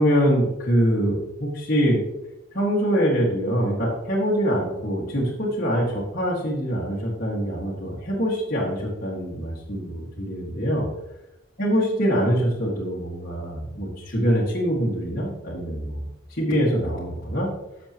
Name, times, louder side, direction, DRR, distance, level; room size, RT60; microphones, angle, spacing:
voice 1, 0.0-2.0 2.5-10.9 11.6-16.0 16.3-17.5, equal, 45° left, -5 dB, 1.8 m, -24 dB
11.0 x 6.7 x 2.9 m, 0.92 s
head